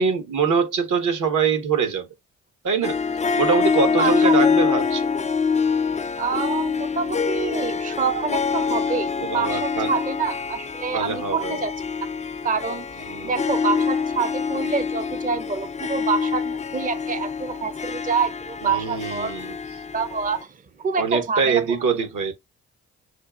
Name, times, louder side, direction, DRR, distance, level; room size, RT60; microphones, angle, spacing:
voice 1, 0.0-2.1 2.6-3.0 3.4-5.1 9.2-9.9 10.9-11.6 13.1-13.3 18.6-19.6 20.9-22.3, right 5 dB, 65° right, 1.4 m, -23 dB
Harp, 2.8-20.4, left 5 dB, 20° left, 0.4 m, -25 dB
voice 2, 3.9-4.4 6.2-11.7 12.4-19.4 19.9-21.6, right 5 dB, 25° right, 0.6 m, -27 dB
6.5 x 2.5 x 2.4 m
hypercardioid pair, 45°, 34 cm